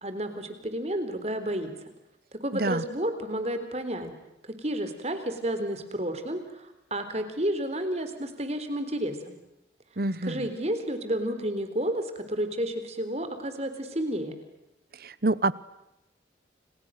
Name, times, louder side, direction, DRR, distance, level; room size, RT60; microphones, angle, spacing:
voice 1, 0.0-1.9 2.3-4.1 4.4-9.3 10.2-14.3, right 1 dB, 35° right, 9 dB, 3.9 m, -31 dB
voice 2, 2.5-2.8 10.0-10.4 15.0-15.5, right 2 dB, 50° right, 19 dB, 1.0 m, -26 dB
30.0 x 30.0 x 6.7 m, 0.89 s
head